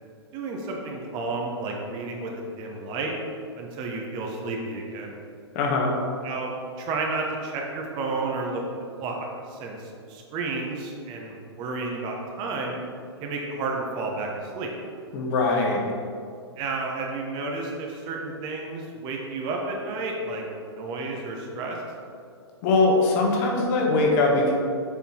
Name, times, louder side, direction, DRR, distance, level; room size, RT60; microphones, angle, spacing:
voice 1, 0.3-2.3 2.6-3.1 3.6-5.1 6.2-6.5 6.8-8.6 9.0-12.8 13.2-14.7 16.6-21.8, right 3 dB, 30° right, 0 dB, 1.1 m, -31 dB
voice 2, 5.5-5.9 15.1-15.9 22.6-24.5, left 3 dB, 40° left, -1 dB, 1.4 m, -21 dB
7.1 x 5.2 x 4.4 m, 2.4 s
figure-of-eight pair, 110°, 14 cm